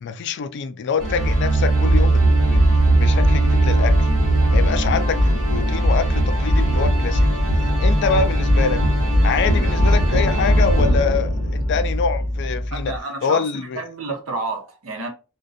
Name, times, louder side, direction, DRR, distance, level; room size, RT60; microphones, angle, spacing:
voice 1, 0.0-2.6 2.9-4.1 4.5-7.3 7.8-8.8 9.2-13.0 13.2-13.8, left 6 dB, 55° left, 0.3 m, -25 dB
sound 1, 1.0-13.0, right 1 dB, 65° right, 1.1 m, -18 dB
voice 2, 12.7-13.4 13.7-15.1, right 2 dB, 85° right, 0.8 m, -29 dB
2.6 x 2.2 x 2.4 m
head